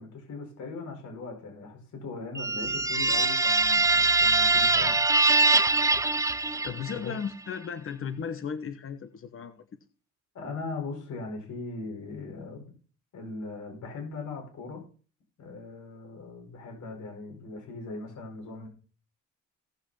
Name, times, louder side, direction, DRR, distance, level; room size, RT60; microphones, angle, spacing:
voice 1, 0.0-5.0 6.8-7.1 10.3-12.6 13.1-14.8 15.4-18.7, left 3 dB, 70° left, 2 dB, 5.2 m, -39 dB
sound 1, 2.4-7.1, right 3 dB, 10° right, 0.6 m, -23 dB
voice 2, 6.6-9.6, left 7 dB, 45° left, 10 dB, 1.2 m, -36 dB
17.5 x 6.2 x 5.6 m, 0.39 s
cardioid pair, 90°, 30 cm